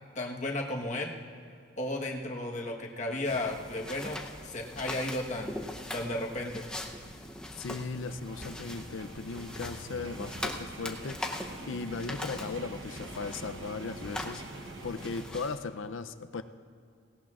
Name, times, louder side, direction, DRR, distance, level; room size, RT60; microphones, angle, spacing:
voice 1, 0.1-1.1 1.8-5.7 5.9-6.6, left 1 dB, 35° left, 0 dB, 1.3 m, -34 dB
sound 1, 3.2-15.6, left 1 dB, 5° left, 0.7 m, -42 dB
voice 2, 7.6-16.4, left 4 dB, 80° left, 10 dB, 0.6 m, -38 dB
sound 2, 8.0-15.2, right 2 dB, 80° right, 1.1 m, -45 dB
17.5 x 17.5 x 2.5 m, 2.4 s
head